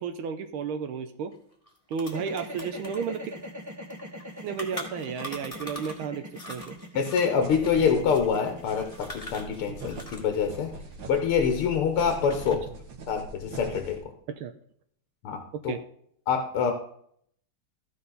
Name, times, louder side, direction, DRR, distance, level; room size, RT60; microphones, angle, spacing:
voice 1, 0.0-1.3 1.9-3.3 4.4-6.8 14.3-14.5 15.7-15.8, right 6 dB, 80° right, 8 dB, 1.5 m, -33 dB
sound 1, 1.3-1.4 1.6-6.0 6.3-10.4 10.6-11.8 12.1-12.7, left 1 dB, 15° left, 2.1 m, -42 dB
sound 2, 2.0-12.2, equal, 10° right, 1.2 m, -42 dB
voice 2, 7.0-10.7 11.1-12.6 13.1-14.0 15.2-15.7 16.3-16.7, left 6 dB, 90° left, 5 dB, 2.0 m, -26 dB
sound 3, 7.4-14.0, right 1 dB, 65° right, 2.0 m, -41 dB
14.5 x 5.7 x 3.9 m, 0.64 s
omnidirectional pair, 2.3 m